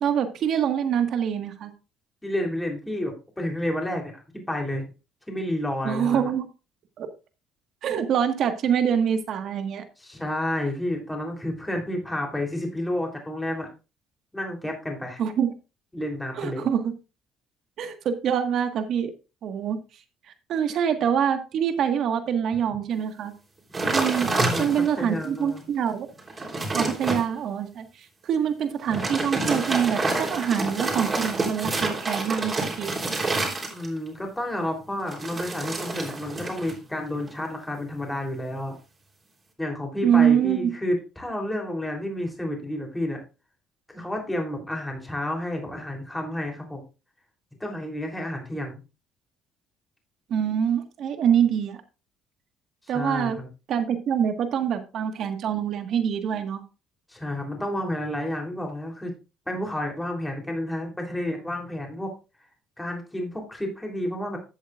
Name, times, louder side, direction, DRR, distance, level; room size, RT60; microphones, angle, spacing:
voice 1, 0.0-1.7 5.8-6.5 7.0-7.1 7.8-9.8 15.2-15.5 16.4-16.9 17.8-19.1 19.4-19.8 20.5-23.3 23.9-24.3 24.6-26.1 26.7-27.9 28.2-32.9 40.0-40.7 50.3-51.8 52.9-53.4 53.7-56.6, right 8 dB, 60° right, 7 dB, 1.6 m, -25 dB
voice 2, 2.2-4.1 4.5-4.9 5.3-6.3 10.0-13.7 14.3-15.2 15.9-16.7 24.2-25.6 33.7-38.8 39.6-43.2 43.9-46.8 47.6-48.8 52.9-53.5 57.1-59.1 59.5-62.1 62.8-64.4, left 1 dB, 10° left, 2 dB, 3.4 m, -30 dB
sound 1, 23.7-25.0 25.6-25.7 26.1-27.2 28.8-34.1 35.1-36.8 37.1-37.5, right 3 dB, 25° right, 3.5 m, -28 dB
14.0 x 8.0 x 2.5 m, 0.29 s
cardioid pair, 105°, 0 cm